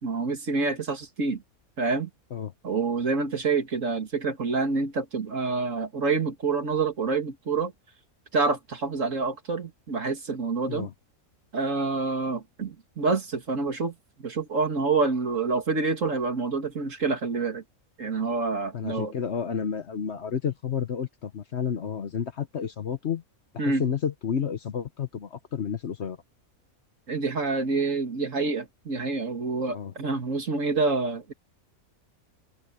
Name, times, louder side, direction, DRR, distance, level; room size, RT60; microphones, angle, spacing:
voice 1, 0.0-1.4 1.8-2.1 2.6-7.7 8.3-10.9 11.5-13.9 14.2-17.6 18.0-19.1 23.6-23.8 27.1-31.3, right 4 dB, 60° right, 2.5 m, -27 dB
voice 2, 18.7-23.2 23.7-26.2 29.7-29.9, left 7 dB, 55° left, 1.1 m, -30 dB
omnidirectional pair, 1.5 m